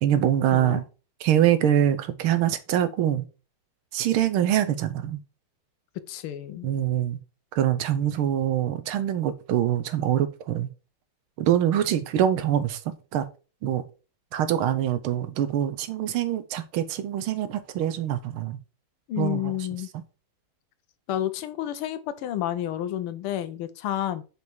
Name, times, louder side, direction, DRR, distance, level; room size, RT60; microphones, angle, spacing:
voice 1, 0.0-0.8 1.2-3.3 3.9-5.2 6.6-7.2 7.5-10.7 11.4-12.8 13.1-13.3 13.6-13.8 14.3-18.6 19.2-19.5, right 10 dB, 80° right, 1.6 m, -24 dB
voice 2, 0.5-0.8 6.1-6.7 19.1-19.9 21.1-24.2, left 12 dB, 85° left, 1.6 m, -30 dB
5.3 x 4.8 x 4.5 m
omnidirectional pair, 2.3 m